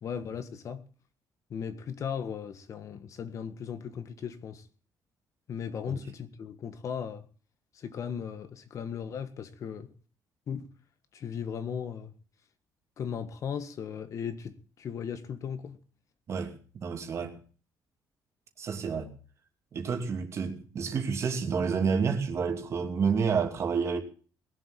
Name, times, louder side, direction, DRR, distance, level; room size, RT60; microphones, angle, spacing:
voice 1, 0.0-0.8 1.5-4.7 5.5-7.2 7.7-9.9 10.5-10.7 11.1-12.1 13.0-15.8, left 7 dB, 45° left, 1.7 m, -37 dB
voice 2, 16.3-17.4 18.6-19.1 19.7-24.0, right 5 dB, 40° right, 2.8 m, -29 dB
20.0 x 7.7 x 9.1 m
cardioid pair, 160°, 7 cm